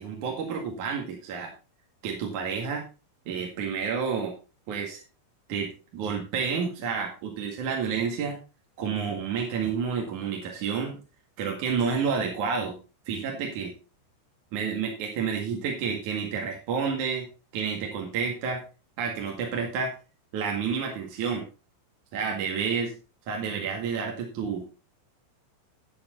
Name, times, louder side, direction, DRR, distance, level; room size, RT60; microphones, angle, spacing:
voice 1, 0.0-1.5 2.0-2.8 3.3-4.3 4.7-5.0 5.5-8.4 8.8-11.0 11.4-12.8 13.1-13.7 14.5-17.3 17.5-18.6 19.0-19.9 20.3-21.4 22.1-22.9 23.3-24.7, right 6 dB, 50° right, 1 dB, 2.6 m, -30 dB
12.0 x 8.9 x 3.9 m, 0.31 s
omnidirectional pair, 5.7 m